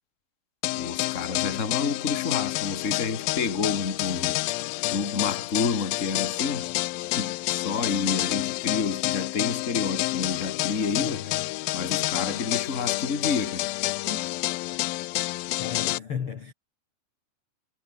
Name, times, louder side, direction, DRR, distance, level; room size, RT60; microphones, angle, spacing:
sound 1, 0.6-16.0, left 20 dB, 90° left, 2.4 m, -29 dB
voice 1, 0.8-4.4 4.9-6.7 7.2-11.4 11.7-13.7 14.1-14.3, left 5 dB, 25° left, 2.6 m, -29 dB
voice 2, 11.0-11.6 15.6-16.5, left 7 dB, 45° left, 2.4 m, -35 dB
omnidirectional pair, 4.2 m